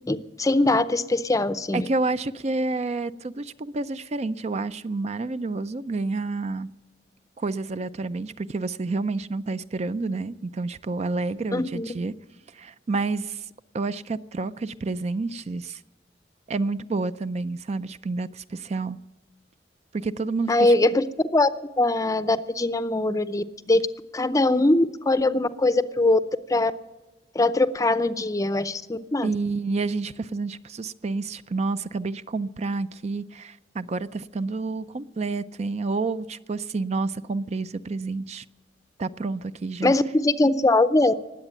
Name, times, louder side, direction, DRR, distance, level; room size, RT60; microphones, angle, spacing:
voice 1, 0.1-1.9 11.5-11.9 20.5-21.0 21.3-21.5 21.8-23.8 24.1-26.2 26.5-26.7 27.3-29.3 39.8-41.1, left 2 dB, 20° left, 0.6 m, -21 dB
voice 2, 1.7-6.7 7.4-12.1 12.5-13.5 13.7-15.8 16.5-19.0 19.9-20.7 29.2-38.4 39.0-39.9, right 3 dB, 40° right, 0.4 m, -29 dB
19.5 x 8.2 x 8.9 m
head